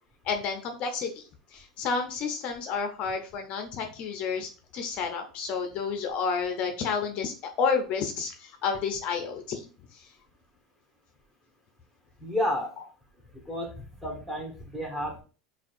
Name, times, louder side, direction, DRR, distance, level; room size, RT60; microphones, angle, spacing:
voice 1, 0.2-10.1, left 5 dB, 45° left, 4 dB, 0.6 m, -31 dB
voice 2, 12.2-12.7 13.3-15.2, left 1 dB, 5° right, 0 dB, 1.4 m, -31 dB
5.9 x 2.4 x 2.6 m, 0.37 s
hypercardioid pair, 85°, 3 cm